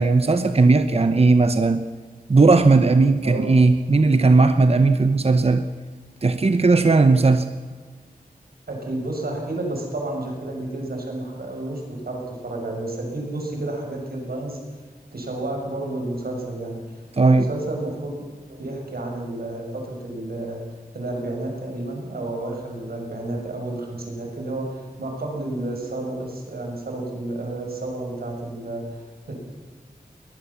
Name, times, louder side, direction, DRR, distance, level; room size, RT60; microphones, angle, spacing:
voice 1, 0.0-1.8 2.3-5.7 6.2-7.5 17.1-17.5, right 3 dB, 40° right, 9 dB, 0.9 m, -17 dB
voice 2, 3.2-3.6 8.7-14.6 15.1-20.6 20.9-29.3, right 2 dB, 90° right, 1 dB, 6.4 m, -31 dB
21.0 x 19.5 x 7.2 m, 1.5 s
wide cardioid pair, 95°, 15 cm